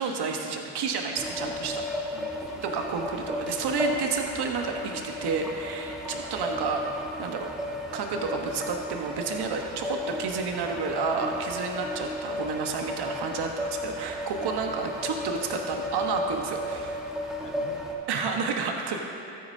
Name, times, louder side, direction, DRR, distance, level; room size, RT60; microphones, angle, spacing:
voice 1, 0.0-1.8 2.6-6.8 7.2-7.5 7.9-17.0 18.1-19.0, right 5 dB, 60° right, 2 dB, 1.3 m, -30 dB
sound 1, 1.2-17.9, left 1 dB, ahead, 1.6 m, -34 dB
voice 2, 2.1-2.6 3.9-4.2 6.0-6.2 9.7-9.8 13.1-13.2 14.6-14.7 17.4-18.0, left 4 dB, 45° left, 1 dB, 1.5 m, -47 dB
13.5 x 9.4 x 2.8 m, 2.9 s
hypercardioid pair, 55°, 44 cm